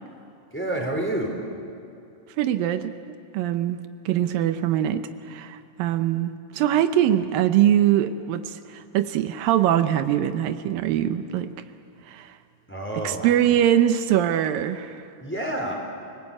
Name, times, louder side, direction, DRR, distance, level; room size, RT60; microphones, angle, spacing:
voice 1, 0.5-1.4 12.7-13.6 15.2-15.7, right 1 dB, 5° left, 1 dB, 3.7 m, -29 dB
voice 2, 2.4-2.9 3.3-3.8 4.1-11.5 12.1-12.3 13.0-15.0, right 11 dB, 85° right, 10 dB, 2.6 m, -22 dB
30.0 x 20.0 x 8.6 m, 2.6 s
omnidirectional pair, 4.0 m